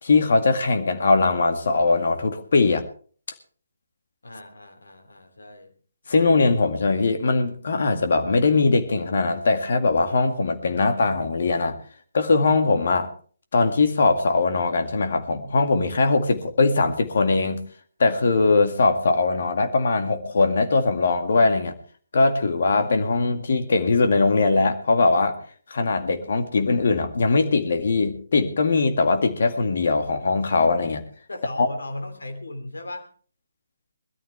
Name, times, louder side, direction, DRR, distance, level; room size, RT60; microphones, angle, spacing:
voice 1, 0.0-2.8 6.1-11.8 12.1-13.1 13.5-17.6 18.0-21.7 22.1-25.4 25.7-31.0 31.6-31.7, left 3 dB, 55° left, 7 dB, 2.1 m, -21 dB
voice 2, 4.2-5.7 31.3-33.1, left 1 dB, 75° left, 6 dB, 3.0 m, -37 dB
21.5 x 13.5 x 3.3 m, 0.43 s
figure-of-eight pair, 145°, 0 cm